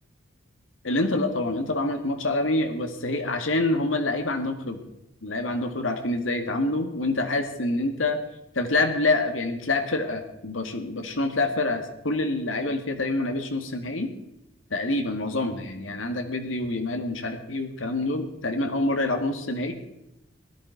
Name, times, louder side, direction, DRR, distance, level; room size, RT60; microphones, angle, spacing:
voice 1, 0.8-4.8 5.2-8.2 8.5-14.1 14.7-19.7, left 2 dB, 85° left, 6 dB, 2.0 m, -26 dB
17.0 x 11.5 x 5.2 m, 0.85 s
head